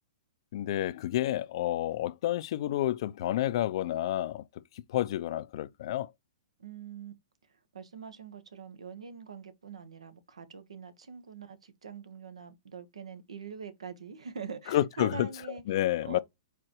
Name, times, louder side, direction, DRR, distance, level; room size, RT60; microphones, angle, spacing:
voice 1, 0.5-4.4 4.9-6.1 14.7-15.3 15.7-16.2, left 13 dB, 55° left, 0.4 m, -29 dB
voice 2, 6.6-7.1 7.7-15.6 16.0-16.2, right 5 dB, 85° right, 1.0 m, -44 dB
4.7 x 3.7 x 2.9 m
hypercardioid pair, 130°, 3 cm